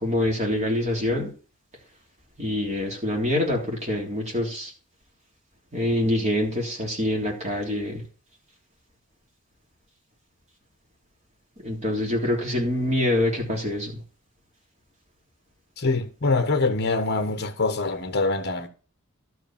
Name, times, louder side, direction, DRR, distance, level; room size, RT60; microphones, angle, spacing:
voice 1, 0.0-1.3 2.4-4.7 5.7-8.0 11.6-13.9, left 1 dB, 30° right, 3.4 m, -25 dB
voice 2, 15.8-18.7, left 3 dB, 50° left, 1.3 m, -24 dB
12.0 x 5.0 x 7.4 m
head